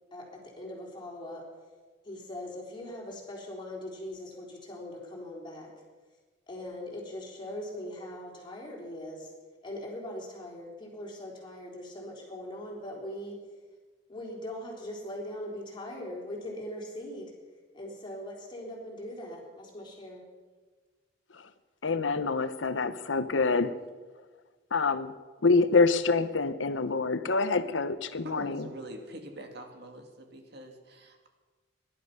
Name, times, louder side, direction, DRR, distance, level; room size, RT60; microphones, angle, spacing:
voice 1, 0.1-1.5 2.0-5.7 6.5-9.3 9.6-13.4 14.1-17.3 17.7-20.2, left 1 dB, 25° left, -2 dB, 3.8 m, -41 dB
voice 2, 21.8-23.7 24.7-25.1 25.4-28.7, left 4 dB, 85° left, 12 dB, 0.9 m, -26 dB
voice 3, 28.2-31.3, right 1 dB, 60° right, 4 dB, 2.2 m, -44 dB
17.5 x 11.5 x 5.6 m, 1.4 s
head